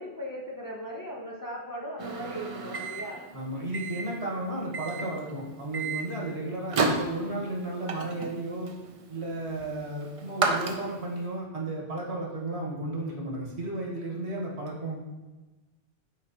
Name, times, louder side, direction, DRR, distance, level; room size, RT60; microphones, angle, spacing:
voice 1, 0.0-3.3, equal, 25° left, -2 dB, 0.5 m, -38 dB
Microwave oven, 2.0-11.2, right 3 dB, 45° right, 0.4 m, -33 dB
voice 2, 3.3-8.7 9.1-15.0, right 2 dB, 80° right, -2 dB, 1.7 m, -34 dB
7.6 x 4.4 x 2.9 m, 1.2 s
omnidirectional pair, 1.1 m